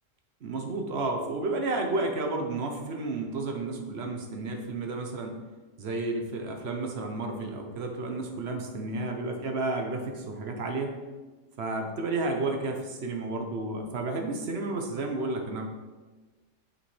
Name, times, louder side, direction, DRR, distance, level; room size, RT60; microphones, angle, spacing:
voice 1, 0.4-5.3 5.8-10.9 11.6-15.7, right 2 dB, 55° right, 3 dB, 1.0 m, -31 dB
6.4 x 5.1 x 3.2 m, 1.3 s
omnidirectional pair, 1.3 m